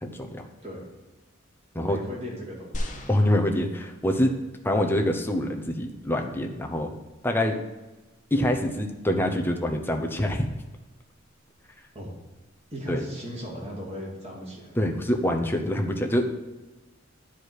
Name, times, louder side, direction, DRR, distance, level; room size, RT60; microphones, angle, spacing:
voice 1, 0.0-0.5 1.7-2.0 3.1-4.3 4.6-6.9 7.2-7.6 8.3-10.5 12.9-13.0 14.8-16.3, left 1 dB, 10° left, 3 dB, 0.7 m, -25 dB
voice 2, 1.7-3.0 4.7-5.0 11.9-12.1 12.7-14.8, equal, 30° right, -3 dB, 2.5 m, -37 dB
sound 1, 2.7-4.2 5.0-5.1, equal, 40° left, 0.9 m, -36 dB
10.0 x 4.9 x 4.7 m, 1.1 s
head